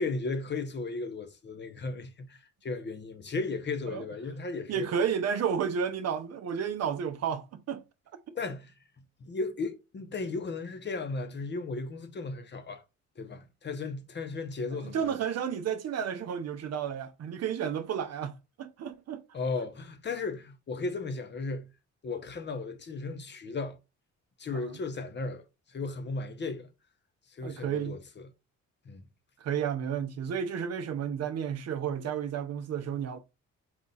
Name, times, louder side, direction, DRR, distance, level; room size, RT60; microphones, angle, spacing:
voice 1, 0.0-4.9 8.3-8.7 9.2-12.8 13.2-15.2 19.3-21.7 22.0-23.8 24.4-26.7 27.3-28.0 28.8-29.0, left 3 dB, 35° left, 0.8 m, -35 dB
voice 2, 4.7-7.8 14.7-19.2 24.5-24.7 27.4-28.0 29.4-33.2, right 7 dB, 55° right, 0.7 m, -32 dB
4.2 x 2.4 x 4.0 m
cardioid pair, 90°, 30 cm